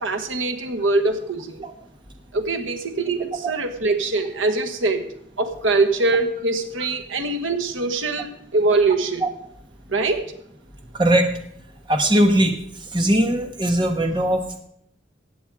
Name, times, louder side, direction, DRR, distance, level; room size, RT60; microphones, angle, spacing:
voice 1, 0.0-1.7 2.3-5.1 5.4-9.2 9.9-10.2, right 3 dB, 85° right, 6 dB, 1.3 m, -23 dB
voice 2, 10.9-11.3 11.9-12.5 12.9-14.4, right 1 dB, 25° right, 5 dB, 1.1 m, -19 dB
15.0 x 8.9 x 4.8 m, 0.71 s
head